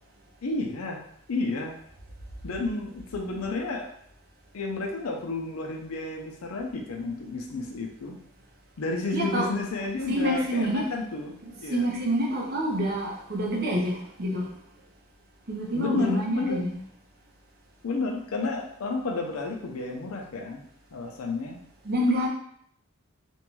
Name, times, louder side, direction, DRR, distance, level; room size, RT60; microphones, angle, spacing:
voice 1, 0.4-1.0 1.3-1.8 2.4-3.9 4.5-8.2 8.8-11.3 11.6-11.9 15.7-16.6 17.8-20.6 20.9-21.6, left 3 dB, 80° left, 1 dB, 0.5 m, -31 dB
voice 2, 9.1-9.5 10.1-10.9 11.4-14.5 15.5-16.8 21.8-22.3, equal, 45° right, -1 dB, 0.6 m, -27 dB
2.6 x 2.2 x 3.0 m, 0.66 s
head